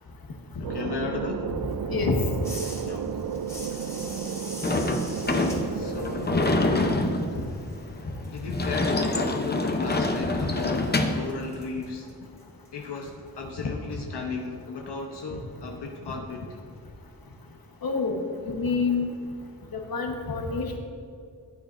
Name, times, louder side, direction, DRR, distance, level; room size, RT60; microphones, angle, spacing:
voice 1, 0.6-1.5 2.8-3.2 5.7-7.0 7.3-7.4 8.2-12.1 12.7-16.6, left 4 dB, 90° left, 1 dB, 0.9 m, -35 dB
sound 1, 0.6-6.8, right 7 dB, 60° right, 0.5 m, -33 dB
sound 2, 2.4-8.0 8.2-13.1, left 1 dB, 5° left, 1.6 m, -45 dB
Sliding door / Slam, 4.6-11.3, left 2 dB, 25° left, 0.7 m, -26 dB
voice 2, 17.8-18.2 18.6-19.1 19.9-20.8, left 4 dB, 65° left, 3 dB, 1.2 m, -26 dB
13.5 x 8.9 x 2.6 m, 2.3 s
wide cardioid pair, 80°, 39 cm